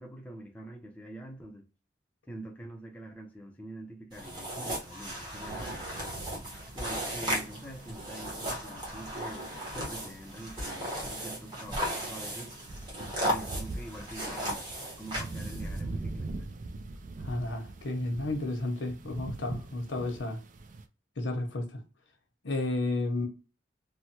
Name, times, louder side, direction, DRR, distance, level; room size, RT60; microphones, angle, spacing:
voice 1, 0.0-1.7 2.3-5.8 6.7-12.6 13.2-14.7 15.0-16.3, right 1 dB, 10° left, 0.5 m, -45 dB
sound 1, 4.1-15.8, equal, 25° right, 1.1 m, -36 dB
sound 2, 5.3-20.8, right 2 dB, 45° right, 0.4 m, -43 dB
voice 2, 17.2-20.4 21.2-21.8 22.4-23.3, left 2 dB, 85° left, 0.8 m, -32 dB
3.1 x 2.1 x 2.7 m
head